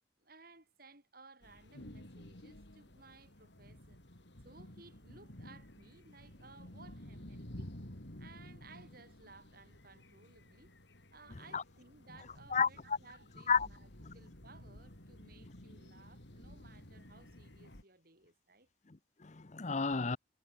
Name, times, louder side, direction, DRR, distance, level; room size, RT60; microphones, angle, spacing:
voice 1, 0.2-7.7 8.2-10.7 11.1-18.7, right 3 dB, 50° right, 6.6 m, -59 dB
sound 1, 1.4-17.8, left 1 dB, 65° left, 3.6 m, -53 dB
voice 2, 12.5-13.0 13.5-13.7 14.0-14.1 18.9-20.2, left 5 dB, 35° left, 0.7 m, -32 dB
head